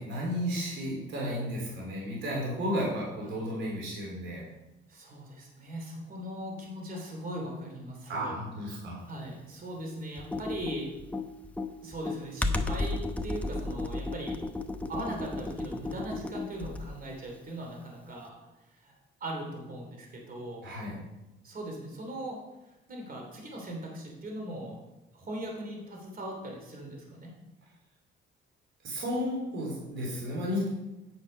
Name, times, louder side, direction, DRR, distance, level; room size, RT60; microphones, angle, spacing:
voice 1, 0.0-4.4 8.1-9.0 20.6-21.0 28.8-30.7, equal, 70° right, -3 dB, 3.4 m, -33 dB
voice 2, 4.9-8.3 9.0-10.9 11.8-14.4 14.9-18.3 18.7-18.9 19.2-20.7 21.4-22.4 22.6-24.8 25.1-27.3, right 1 dB, 45° right, 0 dB, 2.9 m, -39 dB
Computer keyboard, 10.2-17.0, left 2 dB, 5° left, 0.8 m, -33 dB
9.1 x 6.8 x 5.3 m, 0.98 s
cardioid pair, 90°, 20 cm